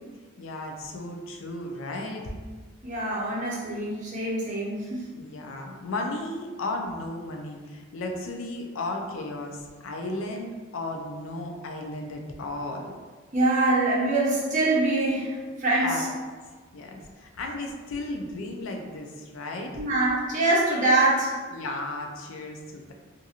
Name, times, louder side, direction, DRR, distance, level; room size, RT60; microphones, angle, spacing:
voice 1, 0.4-2.3 5.1-12.9 15.8-16.1 16.7-19.8 21.5-22.9, left 2 dB, 70° left, 2 dB, 0.4 m, -34 dB
voice 2, 2.8-5.1 13.3-16.1 19.8-21.3, right 2 dB, 40° right, -6 dB, 0.6 m, -24 dB
2.8 x 2.6 x 2.4 m, 1.4 s
head